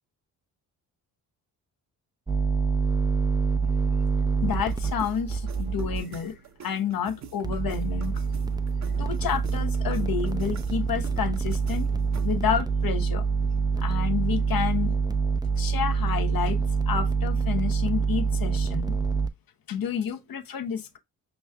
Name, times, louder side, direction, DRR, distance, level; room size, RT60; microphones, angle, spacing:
sound 1, 2.3-6.0 7.4-19.3, right 5 dB, 10° right, 0.4 m, -26 dB
voice 1, 4.4-6.4 6.6-8.1 9.0-11.9 12.2-13.2 13.8-15.0 15.5-16.6 16.9-18.9 19.7-21.0, left 8 dB, 50° left, 0.8 m, -30 dB
sound 2, 4.5-12.5, right 7 dB, 40° right, 0.8 m, -47 dB
5.3 x 3.0 x 2.2 m
hypercardioid pair, 45°, 44 cm